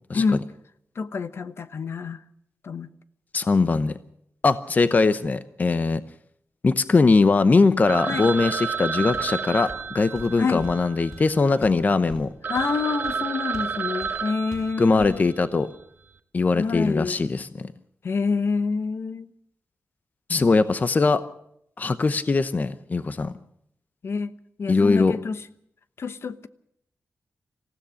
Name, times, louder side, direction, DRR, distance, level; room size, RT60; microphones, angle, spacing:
voice 1, 1.0-2.2 2.6-2.9 8.1-8.3 10.4-10.7 12.5-15.3 16.6-17.2 18.0-19.3 24.0-24.3 24.6-25.4 26.0-26.5, left 5 dB, 60° left, 1.0 m, -27 dB
voice 2, 3.3-3.9 4.4-6.0 6.6-12.3 14.8-15.7 16.3-17.7 20.3-21.2 21.8-23.3 24.7-25.2, left 3 dB, 35° left, 0.8 m, -21 dB
Telephone, 7.9-11.7 12.1-12.2 12.4-15.3, right 6 dB, 45° right, 1.3 m, -31 dB
Walk footsteps, 9.1-9.4 9.7-13.8 14.0-14.2 14.5-15.2, equal, 10° left, 6.6 m, -43 dB
26.5 x 16.0 x 6.4 m
wide cardioid pair, 150°, 5 cm